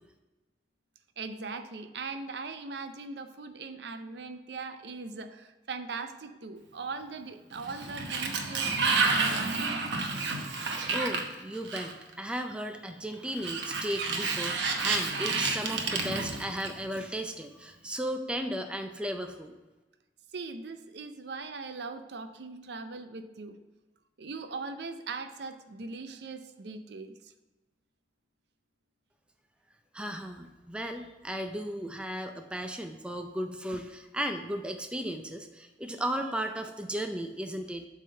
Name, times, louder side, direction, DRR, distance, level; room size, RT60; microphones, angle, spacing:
voice 1, 1.2-9.8 20.3-23.6 24.2-27.2, right 4 dB, 65° right, 9 dB, 0.5 m, -40 dB
Sliding door, 7.5-12.1 13.3-17.0, right 4 dB, 85° right, 1.0 m, -30 dB
voice 2, 10.9-19.6 29.9-37.9, equal, 5° right, 5 dB, 0.4 m, -35 dB
7.6 x 3.6 x 6.5 m, 1.1 s
head